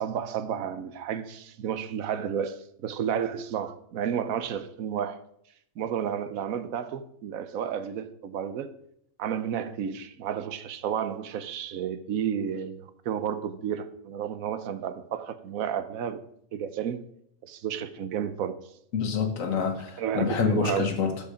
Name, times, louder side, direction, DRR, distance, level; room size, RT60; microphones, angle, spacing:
voice 1, 0.0-5.2 5.8-8.7 9.2-16.2 16.5-17.0 17.4-18.6 20.0-20.9, right 8 dB, 80° right, 1.1 m, -31 dB
voice 2, 18.9-21.3, left 6 dB, 70° left, 1.6 m, -27 dB
12.0 x 4.8 x 5.1 m
omnidirectional pair, 1.5 m